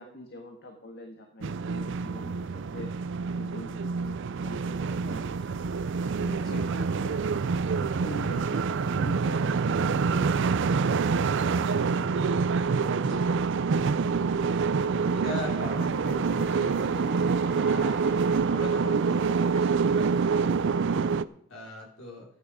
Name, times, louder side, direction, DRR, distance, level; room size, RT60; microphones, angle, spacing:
voice 1, 0.0-2.9 3.3-5.9 6.2-7.1 7.4-11.5 12.0-12.4 12.7-13.4, left 1 dB, 50° left, 3 dB, 1.6 m, -45 dB
sound 1, 1.4-21.2, right 5 dB, 60° right, 0.4 m, -26 dB
sound 2, 6.5-18.4, right 1 dB, 5° right, 1.6 m, -51 dB
voice 2, 14.6-17.1 17.6-18.0 18.5-20.1 20.4-22.3, left 1 dB, 70° left, -1 dB, 3.8 m, -40 dB
14.5 x 9.7 x 5.0 m, 0.70 s
head